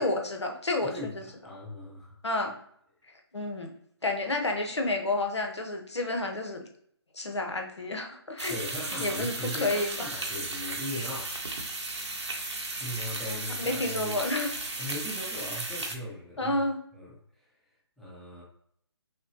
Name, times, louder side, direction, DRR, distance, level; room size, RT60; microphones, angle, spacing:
voice 1, 0.0-1.1 2.2-2.5 3.3-3.7 4.0-6.6 7.1-8.5 9.0-10.1 13.3-14.5 16.4-16.8, left 2 dB, 80° left, 3 dB, 1.1 m, -30 dB
voice 2, 0.8-2.1 8.5-11.4 11.9-12.1 12.8-14.2 14.8-16.6 16.9-17.5 18.0-18.4, left 1 dB, ahead, -5 dB, 0.6 m, -39 dB
sound 1, 8.4-16.0, right 2 dB, 85° right, 1.1 m, -35 dB
6.1 x 2.3 x 2.8 m, 0.66 s
figure-of-eight pair, 145°, 14 cm